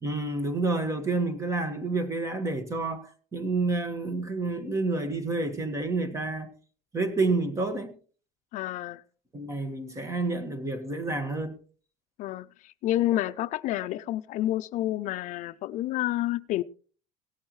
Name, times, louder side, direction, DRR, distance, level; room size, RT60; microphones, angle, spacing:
voice 1, 0.0-6.5 6.9-8.0 9.3-11.5, right 3 dB, 20° right, 1.7 m, -29 dB
voice 2, 8.5-9.0 12.2-16.6, left 14 dB, 55° left, 0.5 m, -29 dB
17.5 x 11.0 x 3.2 m
cardioid pair, 145°, 15 cm